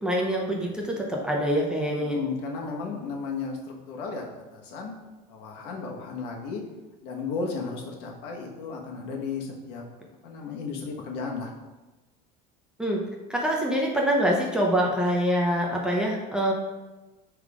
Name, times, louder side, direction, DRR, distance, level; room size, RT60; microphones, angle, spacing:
voice 1, 0.0-2.2 12.8-13.0 13.3-16.5, equal, 5° right, -2 dB, 0.6 m, -25 dB
voice 2, 2.0-4.9 5.3-6.6 7.0-9.8 10.2-11.5, left 4 dB, 65° left, 0 dB, 1.2 m, -34 dB
5.3 x 3.7 x 4.8 m, 1.1 s
cardioid pair, 170°, 18 cm